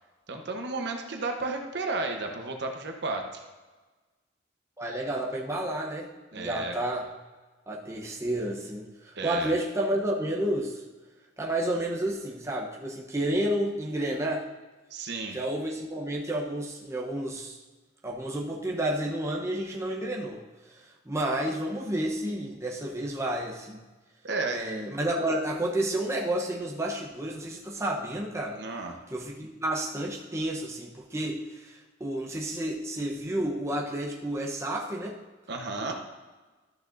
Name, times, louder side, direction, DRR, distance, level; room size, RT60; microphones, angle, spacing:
voice 1, 0.3-3.4 6.3-6.8 9.2-9.5 14.9-15.4 24.2-24.7 28.5-29.0 35.5-35.9, right 3 dB, 60° right, 3 dB, 1.0 m, -33 dB
voice 2, 4.8-6.1 6.3-7.1 7.7-10.8 11.4-14.5 15.3-17.6 18.0-20.4 20.8-23.8 24.5-28.6 29.1-35.2, right 1 dB, 15° right, -1 dB, 0.8 m, -30 dB
12.5 x 6.5 x 2.6 m, 1.3 s
head